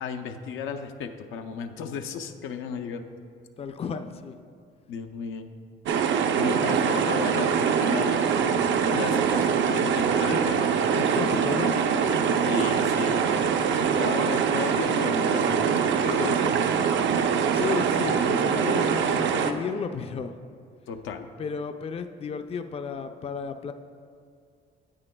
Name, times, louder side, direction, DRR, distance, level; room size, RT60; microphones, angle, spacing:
voice 1, 0.0-3.1 4.9-5.5 6.4-8.3 8.9-10.7 12.4-13.2 13.8-16.6 20.9-21.3, left 6 dB, 85° left, 6 dB, 0.5 m, -34 dB
voice 2, 3.6-4.4 9.1-9.2 10.3-10.5 10.9-11.8 17.5-20.3 21.4-23.7, left 5 dB, 30° left, 8 dB, 0.4 m, -33 dB
sound 1, 5.9-19.5, right 7 dB, 70° right, 0.5 m, -23 dB
9.9 x 8.3 x 2.2 m, 2.2 s
cardioid pair, 90°, 20 cm